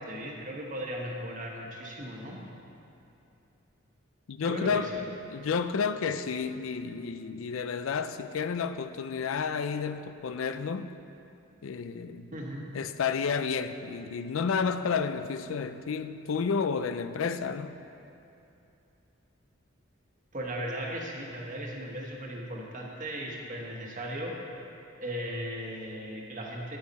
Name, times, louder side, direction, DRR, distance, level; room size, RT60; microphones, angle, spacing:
voice 1, 0.0-2.4 4.5-5.1 12.3-12.7 20.3-24.4 25.0-26.8, equal, 40° right, 1.3 m, -37 dB
voice 2, 4.3-4.9 5.3-10.9 11.6-12.3 12.7-17.8, left 5 dB, 85° left, 0.4 m, -31 dB
9.7 x 9.5 x 4.2 m
head